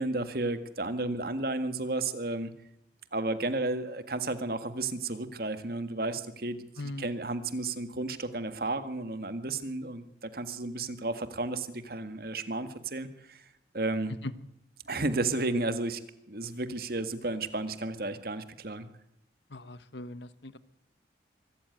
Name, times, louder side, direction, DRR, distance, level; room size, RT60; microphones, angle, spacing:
voice 1, 0.0-2.5 3.1-13.4 13.7-14.1 14.9-16.0 16.3-18.9, right 2 dB, 55° right, 10 dB, 1.7 m, -33 dB
voice 2, 6.8-7.1 14.1-14.3 19.5-20.6, left 2 dB, 75° left, 15 dB, 1.1 m, -39 dB
24.0 x 14.0 x 9.4 m, 0.81 s
head